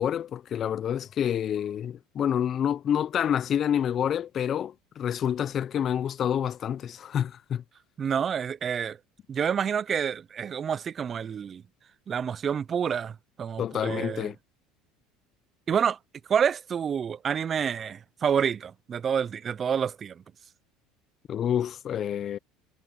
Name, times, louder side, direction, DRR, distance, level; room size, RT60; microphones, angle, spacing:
voice 1, 0.0-7.6 13.6-14.4 21.3-22.4, left 9 dB, 45° left, 0.6 m, -28 dB
voice 2, 8.0-9.0 9.3-11.6 12.1-14.3 15.7-16.0 16.3-20.2, right 7 dB, 35° right, 0.4 m, -28 dB
supercardioid pair, 100°, 0 cm